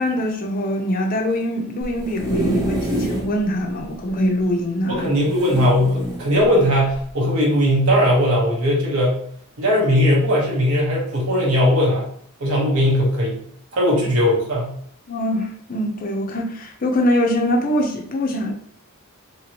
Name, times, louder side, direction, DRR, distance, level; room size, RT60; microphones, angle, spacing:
voice 1, 0.0-5.1 13.9-14.0 15.1-18.5, left 1 dB, 40° left, 0.5 m, -23 dB
sound 1, 1.8-3.3 3.8-3.9 4.1-4.2 5.3-6.2 6.9-7.1, right 1 dB, 20° right, 0.5 m, -26 dB
voice 2, 4.9-9.2 9.6-12.1 12.4-13.4 13.7-14.7, equal, 70° right, 1.0 m, -18 dB
3.0 x 2.8 x 2.8 m
head